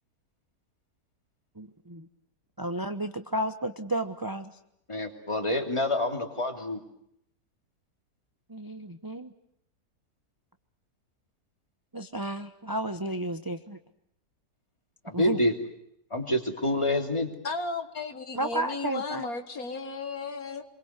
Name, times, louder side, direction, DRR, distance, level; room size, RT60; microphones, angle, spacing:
voice 1, 1.6-2.1 2.6-4.5 8.5-9.3 11.9-13.8 15.1-15.4 18.3-19.3, right 1 dB, 15° right, 8 dB, 0.8 m, -32 dB
voice 2, 4.9-6.8 15.0-15.5 16.1-17.3, left 1 dB, 20° left, 4 dB, 2.9 m, -27 dB
voice 3, 17.4-20.6, left 4 dB, 65° left, 8 dB, 2.1 m, -34 dB
27.5 x 22.5 x 8.2 m, 0.75 s
omnidirectional pair, 1.7 m